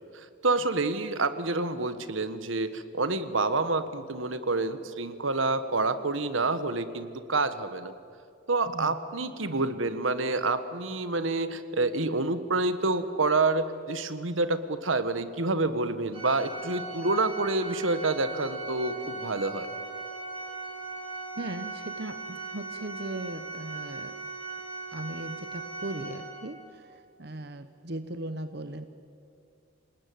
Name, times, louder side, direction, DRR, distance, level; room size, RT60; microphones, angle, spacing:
voice 1, 0.1-7.9 8.5-19.7, right 3 dB, 80° right, 12 dB, 1.5 m, -28 dB
Organ, 16.1-26.7, right 3 dB, 25° right, 4.9 m, -39 dB
voice 2, 21.4-24.2 24.9-28.9, right 2 dB, 55° right, 10 dB, 1.0 m, -38 dB
27.5 x 19.5 x 9.4 m, 2.6 s
head